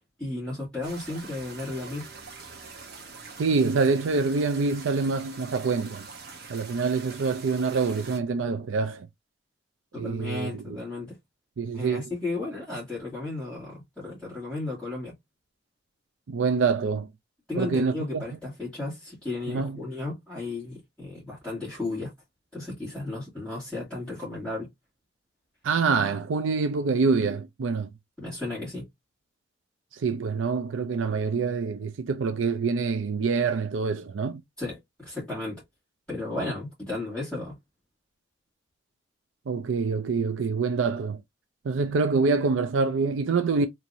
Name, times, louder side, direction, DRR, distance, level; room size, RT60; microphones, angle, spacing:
voice 1, 0.2-2.1 9.9-11.2 11.7-15.1 17.5-22.1 22.5-24.7 28.2-28.9 34.6-35.6 36.1-37.5, left 2 dB, 5° left, 2.3 m, -34 dB
sound 1, 0.8-8.2, right 4 dB, 55° right, 1.0 m, -44 dB
voice 2, 3.4-6.1 6.5-9.1 10.0-10.6 11.6-12.0 16.3-17.1 17.6-18.2 19.5-19.8 25.6-27.9 29.9-34.4 39.5-41.2 41.6-43.7, right 4 dB, 85° right, 0.5 m, -26 dB
4.5 x 2.9 x 2.6 m
head